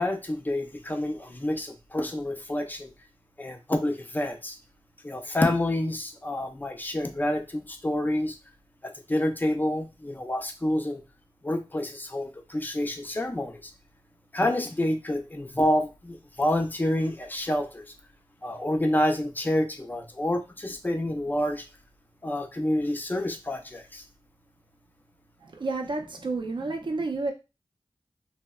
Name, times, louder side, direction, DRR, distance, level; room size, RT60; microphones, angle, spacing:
voice 1, 0.0-2.9 3.4-4.5 5.0-8.3 9.1-11.0 11.4-13.6 14.3-17.8 18.4-21.6 22.2-24.0, left 1 dB, 20° left, 5 dB, 0.4 m, -28 dB
voice 2, 25.4-27.3, right 3 dB, 60° right, 3 dB, 0.5 m, -30 dB
2.7 x 2.1 x 2.3 m, 0.28 s
wide cardioid pair, 65°, 9 cm